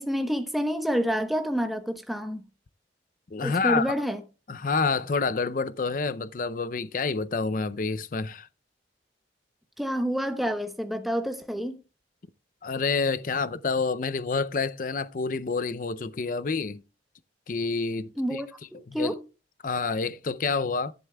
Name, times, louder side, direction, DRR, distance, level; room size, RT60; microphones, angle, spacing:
voice 1, 0.0-2.4 3.4-4.2 9.8-11.8 18.2-18.5 18.9-19.2, equal, ahead, 1.0 m, -28 dB
voice 2, 3.3-3.9 4.5-8.5 12.6-16.8 17.5-18.4 18.9-19.1 19.6-20.9, left 4 dB, 45° left, 0.5 m, -28 dB
13.0 x 11.0 x 2.3 m
head